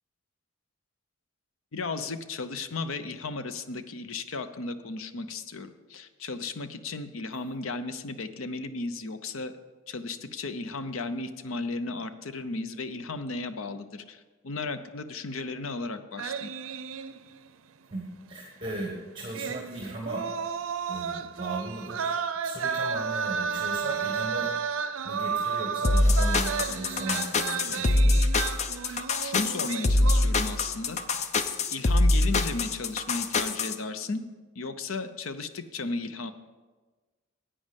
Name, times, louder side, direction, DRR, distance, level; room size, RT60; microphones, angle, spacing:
voice 1, 1.7-9.5 9.9-16.5 28.9-31.0 31.7-34.2 34.6-36.3, left 3 dB, 75° left, 11 dB, 0.7 m, -35 dB
sound 1, 16.2-17.6 17.9-18.0 19.3-30.7 31.0-31.3, right 6 dB, 75° right, 0.5 m, -32 dB
voice 2, 17.9-20.2 20.9-22.1 22.4-24.5 25.0-28.3, right 2 dB, 20° right, 0 dB, 1.3 m, -37 dB
sound 2, 25.8-33.8, left 2 dB, 35° left, 0.5 m, -24 dB
11.0 x 8.5 x 5.2 m, 1.3 s
head